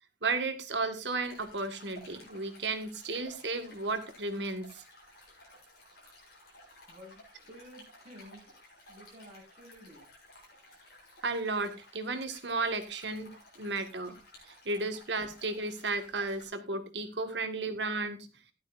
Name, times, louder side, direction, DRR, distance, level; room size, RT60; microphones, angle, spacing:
voice 1, 0.2-4.8 11.2-14.2 14.4-18.3, right 3 dB, 70° right, 8 dB, 1.7 m, -34 dB
Stream, 1.2-16.5, left 1 dB, 55° left, 7.3 m, -55 dB
voice 2, 6.9-8.6 8.9-10.1, equal, 40° right, -1 dB, 5.3 m, -52 dB
15.0 x 12.0 x 2.5 m, 0.27 s
head